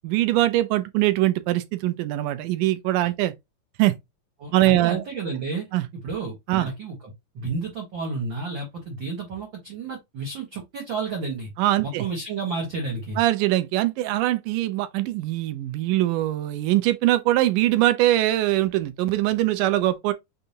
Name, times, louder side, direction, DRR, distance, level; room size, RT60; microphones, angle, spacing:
voice 1, 0.0-3.3 3.8-4.0 4.5-5.0 5.7-5.8 6.5-6.7 11.6-12.1 13.2-20.1, right 15 dB, 90° right, 2.2 m, -22 dB
voice 2, 4.4-5.6 5.9-11.5 11.8-13.2, right 4 dB, 50° right, 1.5 m, -31 dB
6.6 x 2.6 x 2.8 m
omnidirectional pair, 3.6 m